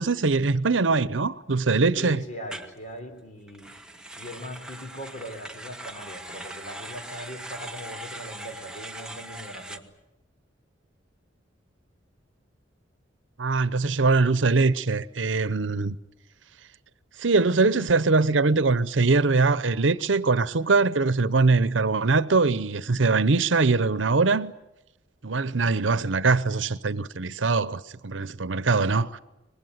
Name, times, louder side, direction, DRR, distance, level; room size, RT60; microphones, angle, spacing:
voice 1, 0.0-2.2 13.4-16.0 17.2-24.5 25.2-29.2, right 3 dB, 85° right, 0.9 m, -22 dB
voice 2, 2.0-3.7 4.1-9.8, equal, 40° left, 3.8 m, -40 dB
sound 1, 2.5-2.7 3.5-9.8, right 1 dB, 5° right, 1.3 m, -40 dB
24.0 x 20.5 x 9.5 m
head